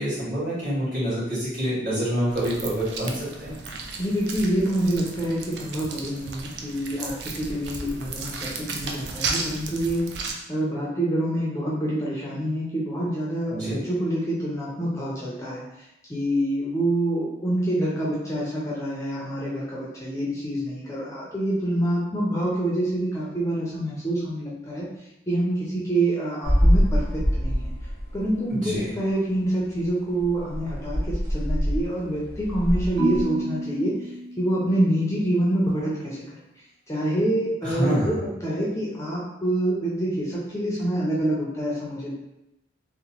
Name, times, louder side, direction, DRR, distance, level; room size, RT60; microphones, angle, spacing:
voice 1, 0.0-3.5 13.5-13.8 28.5-28.9 37.6-38.2, equal, 45° right, -9 dB, 1.4 m, -27 dB
sound 1, 2.3-10.3, right 4 dB, 70° right, 0.4 m, -34 dB
voice 2, 4.0-10.1 10.5-15.6 16.1-24.9 25.3-27.7 28.1-33.9 34.4-36.2 36.9-42.1, right 1 dB, 15° left, -5 dB, 0.4 m, -26 dB
sound 2, 26.4-28.4 28.7-28.8 29.4-29.5 29.7-29.9 30.2-33.2, equal, 15° right, 0.8 m, -24 dB
Marimba xylophone / Wood, 33.0-35.2, left 1 dB, 85° right, 0.8 m, -31 dB
2.8 x 2.1 x 2.9 m, 0.88 s
head